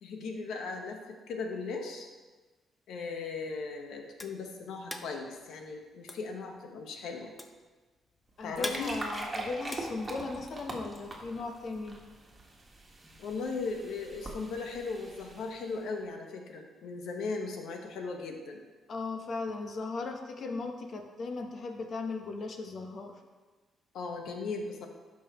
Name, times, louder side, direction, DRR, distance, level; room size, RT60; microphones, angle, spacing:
voice 1, 0.0-2.1 2.9-7.3 8.4-8.9 13.2-18.6 23.9-24.9, left 4 dB, 80° left, 3 dB, 1.1 m, -38 dB
sound 1, 3.5-10.7, left 2 dB, 15° left, 0.7 m, -43 dB
sound 2, 8.3-15.8, right 2 dB, 25° right, 1.6 m, -43 dB
voice 2, 8.4-12.0 18.9-23.1, left 3 dB, 50° left, 4 dB, 1.0 m, -37 dB
12.0 x 5.4 x 3.0 m, 1.3 s
cardioid pair, 90°, 0 cm